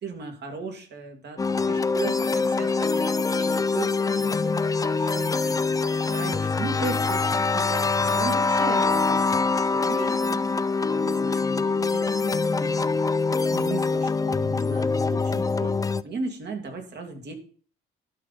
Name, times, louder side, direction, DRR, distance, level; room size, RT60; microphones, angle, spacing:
voice 1, 0.0-5.8 6.1-13.0 13.4-17.3, right 3 dB, 60° right, 4 dB, 2.4 m, -37 dB
sound 1, 1.4-16.0, left 4 dB, 15° left, 0.4 m, -24 dB
11.5 x 4.1 x 7.2 m, 0.44 s
cardioid pair, 90°, 20 cm